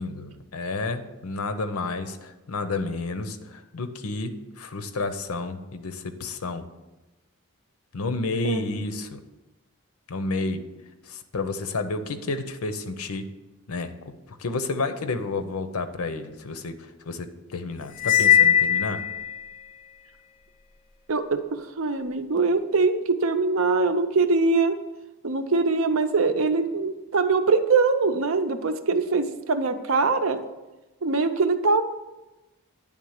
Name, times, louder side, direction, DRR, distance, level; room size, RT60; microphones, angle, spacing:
voice 1, 0.0-6.6 7.9-9.2 10.1-10.6 11.0-13.3 13.7-13.9 14.3-19.0, left 3 dB, 90° left, 10 dB, 0.7 m, -31 dB
Cymbal, 18.0-19.4, left 10 dB, 40° left, 0.5 m, -19 dB
voice 2, 21.1-24.8 25.2-30.4 31.0-31.8, right 4 dB, 70° right, 9 dB, 0.6 m, -23 dB
9.9 x 3.6 x 6.4 m, 1.1 s
head